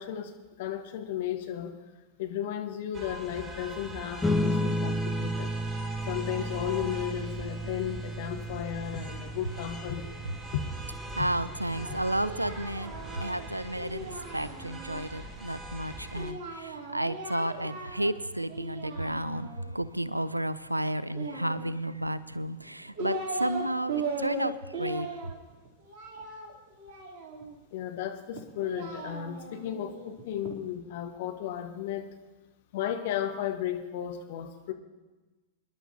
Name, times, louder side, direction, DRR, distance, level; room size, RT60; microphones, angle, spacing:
voice 1, 0.0-1.8 2.2-5.5 6.1-10.1 10.5-10.6 27.7-32.0 32.7-34.7, left 10 dB, 55° left, 1.4 m, -34 dB
sound 1, 2.9-16.3, right 1 dB, 20° right, 1.5 m, -42 dB
sound 2, 4.2-15.0, equal, 10° left, 0.9 m, -34 dB
voice 2, 11.1-25.1, right 1 dB, 85° right, 0.5 m, -32 dB
Singing, 11.7-15.0 16.1-18.2 18.5-19.7 21.1-22.1 22.6-23.6 23.9-27.5 28.3-30.6, right 3 dB, 40° right, 3.3 m, -38 dB
25.5 x 11.0 x 2.8 m
figure-of-eight pair, 90°, 0 cm